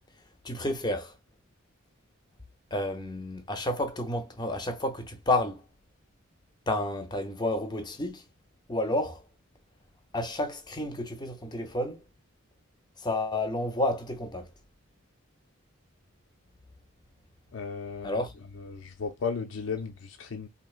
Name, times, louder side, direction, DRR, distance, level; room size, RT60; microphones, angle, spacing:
voice 1, 0.4-1.1 2.7-5.6 6.7-8.2 8.7-9.2 10.1-12.0 13.0-14.5 18.0-18.3, left 1 dB, 20° left, 0.6 m, -30 dB
voice 2, 17.5-18.3 18.6-20.5, left 5 dB, 70° left, 0.5 m, -35 dB
4.3 x 2.8 x 2.4 m
head